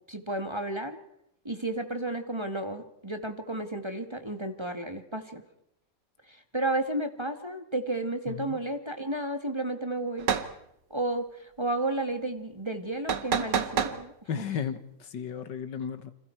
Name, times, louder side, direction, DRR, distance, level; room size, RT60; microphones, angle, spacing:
voice 1, 0.1-1.0 1.4-5.4 6.3-10.3 10.9-14.5, right 2 dB, 15° right, 6 dB, 1.7 m, -32 dB
voice 2, 8.3-8.6 14.3-16.1, left 7 dB, 80° left, 11 dB, 2.1 m, -34 dB
sound 1, 10.2-10.5 13.1-14.0, right 7 dB, 80° right, 2.0 m, -27 dB
29.0 x 27.0 x 4.6 m, 0.80 s
omnidirectional pair, 1.9 m